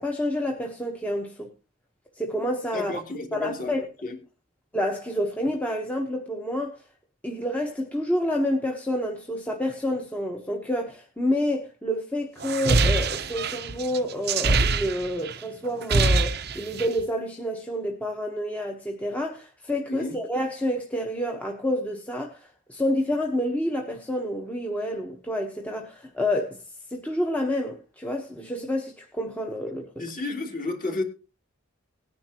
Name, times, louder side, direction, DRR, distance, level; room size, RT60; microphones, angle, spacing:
voice 1, 0.0-1.5 2.2-3.0 3.3-3.9 4.7-6.8 7.2-26.6 26.9-30.1, left 1 dB, 5° left, 1.1 m, -28 dB
voice 2, 2.7-3.7 4.0-4.2 19.9-20.2 30.0-31.0, left 2 dB, 40° left, 2.9 m, -31 dB
sound 1, 12.4-15.3 15.7-17.0, right 3 dB, 50° right, 0.7 m, -24 dB
18.5 x 9.8 x 3.0 m
head